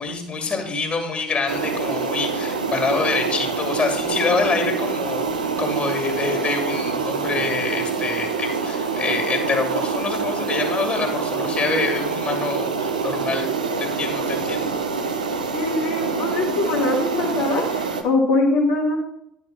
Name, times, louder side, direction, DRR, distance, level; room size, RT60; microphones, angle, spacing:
voice 1, 0.0-13.5 13.8-14.7, left 4 dB, 25° left, 3 dB, 2.4 m, -26 dB
sound 1, 1.5-18.0, right 5 dB, 80° right, 0.7 m, -25 dB
voice 2, 15.5-19.0, left 2 dB, 65° left, -3 dB, 1.3 m, -22 dB
11.0 x 4.7 x 5.5 m, 0.73 s
figure-of-eight pair, 60°, 4 cm